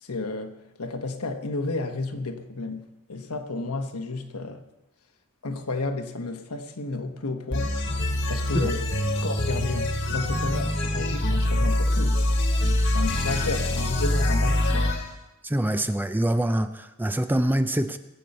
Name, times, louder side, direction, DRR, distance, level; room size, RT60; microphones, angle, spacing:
voice 1, 0.0-4.6 5.4-8.8 9.2-12.2 12.8-14.9, left 3 dB, 80° left, 5 dB, 1.2 m, -32 dB
sound 1, 7.5-15.1, left 1 dB, 55° left, 1.5 m, -24 dB
voice 2, 15.4-18.0, right 1 dB, 10° right, 10 dB, 0.4 m, -25 dB
21.0 x 8.4 x 4.2 m, 1.0 s
head